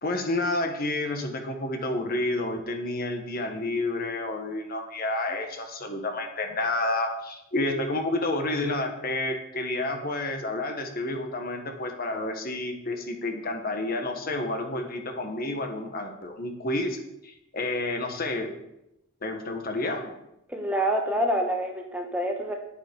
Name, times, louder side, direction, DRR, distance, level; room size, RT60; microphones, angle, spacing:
voice 1, 0.0-18.5 19.2-20.1, left 2 dB, 45° left, 4 dB, 1.5 m, -30 dB
voice 2, 20.5-22.5, right 1 dB, 5° right, 2 dB, 1.1 m, -27 dB
9.3 x 8.9 x 5.4 m, 0.84 s
head